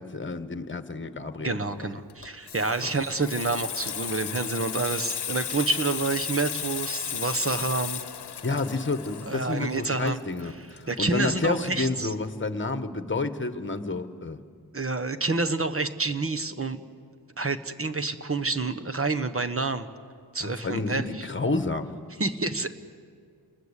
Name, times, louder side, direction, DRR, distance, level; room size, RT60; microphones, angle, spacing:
voice 1, 0.0-1.9 2.8-2.9 8.4-14.4 20.4-21.9, left 3 dB, 30° left, 10 dB, 1.5 m, -30 dB
voice 2, 1.4-8.0 9.3-10.2 10.9-12.1 14.7-16.8 17.4-19.9 20.3-21.3 22.2-22.7, right 3 dB, 35° right, 11 dB, 1.3 m, -28 dB
Water tap faucet / Sink (filling or washing), 2.1-11.4 11.7-12.0, left 8 dB, 75° left, 1.0 m, -35 dB
29.0 x 21.0 x 8.4 m, 2.1 s
wide cardioid pair, 75°, 40 cm